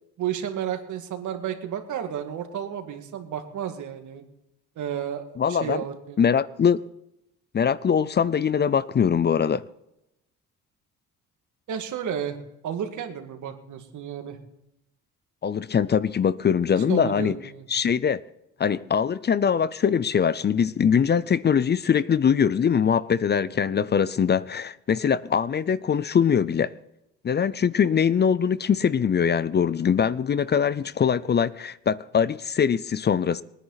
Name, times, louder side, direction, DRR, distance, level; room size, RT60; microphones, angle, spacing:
voice 1, 0.2-4.2 4.8-5.2 5.5-6.2 11.7-12.4 12.6-14.4 16.9-17.7, right 9 dB, 75° right, 2.1 m, -32 dB
voice 2, 5.4-5.8 6.2-6.8 7.5-9.6 15.4-17.4 17.7-18.2 18.6-26.7 27.2-33.4, left 7 dB, 35° left, 0.5 m, -22 dB
22.0 x 10.0 x 4.1 m
cardioid pair, 90°, 30 cm